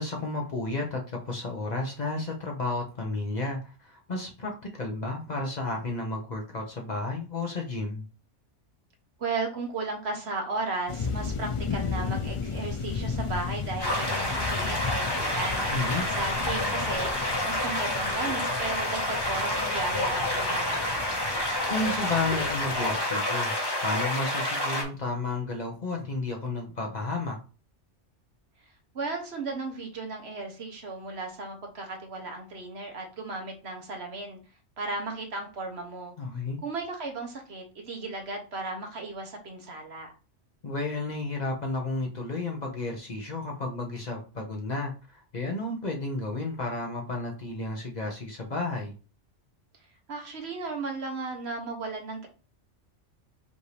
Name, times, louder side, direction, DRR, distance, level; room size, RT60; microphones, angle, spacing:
voice 1, 0.0-8.0 15.7-16.0 21.7-23.5 23.8-27.4 36.2-36.6 40.6-48.9, left 2 dB, 40° left, 0.8 m, -32 dB
voice 2, 9.2-15.7 16.1-21.1 28.9-34.4 34.8-36.1 36.6-40.1 50.1-52.3, right 3 dB, 60° right, 1.2 m, -35 dB
sound 1, 10.9-23.0, left 5 dB, 55° left, 0.3 m, -35 dB
sound 2, 13.8-24.8, left 1 dB, 20° left, 1.0 m, -29 dB
5.2 x 2.7 x 3.2 m
omnidirectional pair, 1.2 m